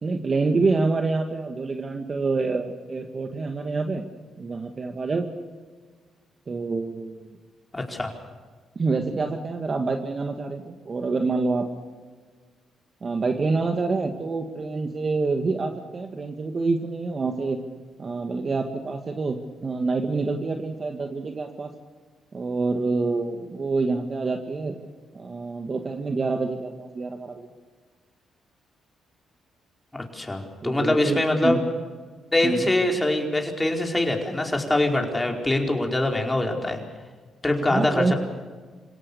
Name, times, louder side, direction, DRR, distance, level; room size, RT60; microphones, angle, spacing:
voice 1, 0.0-4.0 4.4-5.3 6.5-7.4 8.8-11.7 13.0-17.6 18.0-21.7 22.3-24.8 25.1-27.5 30.6-31.6 32.4-32.7 37.6-38.1, right 3 dB, 40° right, 5 dB, 1.9 m, -27 dB
voice 2, 7.7-8.1 29.9-31.6 32.3-36.8 37.4-38.1, left 1 dB, 15° left, 2 dB, 4.6 m, -24 dB
27.0 x 17.5 x 7.0 m, 1.5 s
supercardioid pair, 65°, 0 cm